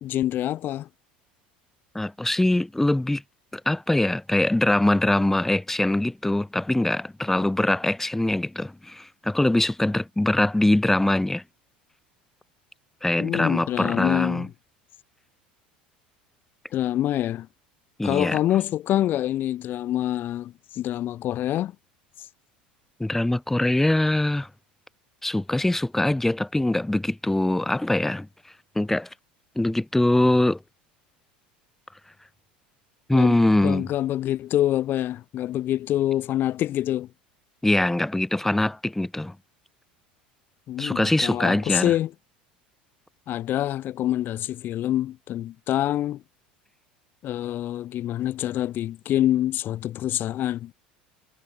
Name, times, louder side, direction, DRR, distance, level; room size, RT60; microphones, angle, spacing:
voice 1, 0.0-0.9 13.2-14.5 16.7-17.5 18.0-21.7 33.1-33.4 33.6-37.1 40.7-42.1 43.3-46.2 47.2-50.7, left 13 dB, 45° left, 0.8 m, -26 dB
voice 2, 1.9-3.2 3.5-11.4 13.0-14.5 18.0-18.4 23.0-24.5 25.2-28.3 28.7-29.1 29.6-30.6 33.1-33.9 37.6-39.3 40.8-41.9, left 1 dB, 5° left, 1.1 m, -23 dB
figure-of-eight pair, 75°, 5 cm